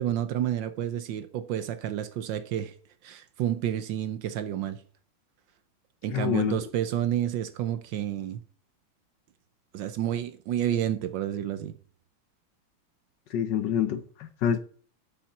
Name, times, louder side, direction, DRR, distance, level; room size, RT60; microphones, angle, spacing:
voice 1, 0.0-2.7 3.0-4.8 6.0-8.4 9.7-11.8, right 11 dB, 70° right, 1.3 m, -30 dB
voice 2, 6.1-6.6 13.3-14.6, left 9 dB, 65° left, 1.2 m, -27 dB
7.2 x 7.2 x 5.8 m
omnidirectional pair, 2.3 m